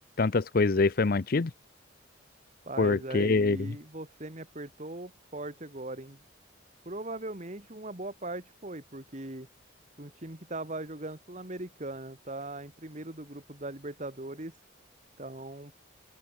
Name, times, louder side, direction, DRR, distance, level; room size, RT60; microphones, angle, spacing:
voice 1, 0.2-1.5 2.8-3.7, left 3 dB, 50° left, 0.6 m, -25 dB
voice 2, 2.7-6.2 6.9-9.5 10.0-14.6 15.2-15.7, right 2 dB, 40° right, 2.3 m, -39 dB
open air
head